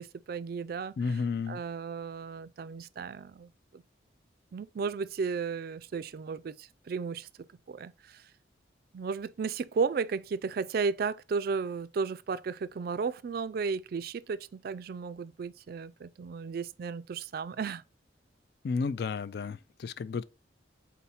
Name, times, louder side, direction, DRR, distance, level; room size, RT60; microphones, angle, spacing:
voice 1, 0.0-1.2 1.5-3.8 4.5-7.3 7.7-8.3 8.9-17.8, right 5 dB, 50° right, 0.3 m, -34 dB
voice 2, 1.0-1.6 18.6-20.2, left 4 dB, 55° left, 0.3 m, -32 dB
4.2 x 4.1 x 5.6 m
head